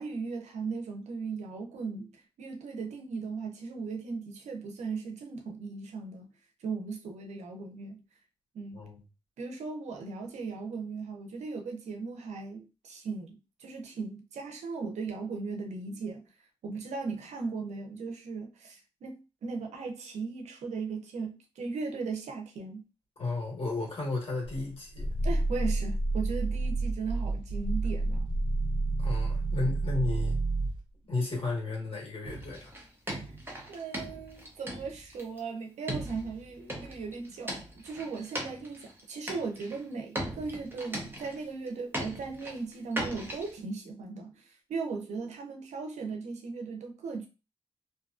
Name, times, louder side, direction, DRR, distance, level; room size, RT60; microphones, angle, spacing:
voice 1, 0.0-2.1 2.4-6.3 6.6-8.0 8.5-8.8 9.4-16.2 16.6-22.8 25.2-28.3 33.1-33.2 33.7-47.3, right 4 dB, 90° right, 0.6 m, -37 dB
voice 2, 23.2-25.1 29.0-30.4 31.1-32.7, left 3 dB, 55° left, 1.4 m, -33 dB
Growling, 24.4-30.8, right 2 dB, 50° right, 0.8 m, -29 dB
sound 1, 32.2-35.4 35.9-39.0 39.3-39.8 40.1-41.7 41.9-43.5, right 1 dB, 20° right, 0.8 m, -39 dB
2.7 x 2.3 x 2.4 m
cardioid pair, 65°, 11 cm